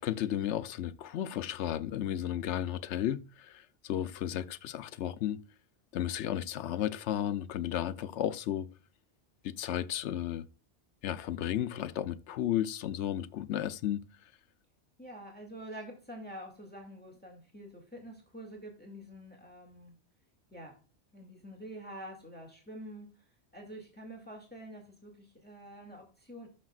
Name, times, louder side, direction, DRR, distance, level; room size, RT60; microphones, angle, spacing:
voice 1, 0.0-5.4 5.9-8.7 9.4-10.5 11.0-14.0, left 11 dB, 85° left, 0.9 m, -33 dB
voice 2, 15.0-19.9 20.5-20.8 21.1-23.1 23.5-26.5, right 1 dB, 10° left, 2.2 m, -47 dB
12.0 x 6.5 x 2.4 m
omnidirectional pair, 1.2 m